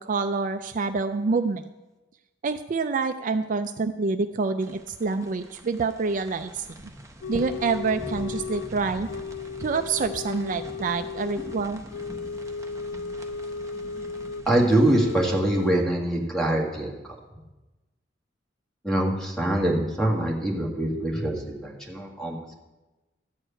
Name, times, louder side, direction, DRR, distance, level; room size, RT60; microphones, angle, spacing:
voice 1, 0.0-1.6 2.4-6.7 7.3-9.1 9.6-11.8, right 4 dB, 45° right, 9 dB, 0.4 m, -27 dB
sound 1, 4.6-15.4, right 1 dB, 15° right, 0.9 m, -43 dB
sound 2, 7.2-8.7 9.1-14.5 14.8-15.8, left 6 dB, 75° left, 0.3 m, -35 dB
voice 2, 14.5-17.2 18.8-22.5, right 1 dB, 5° left, -1 dB, 1.9 m, -24 dB
13.0 x 4.8 x 8.9 m, 1.1 s
head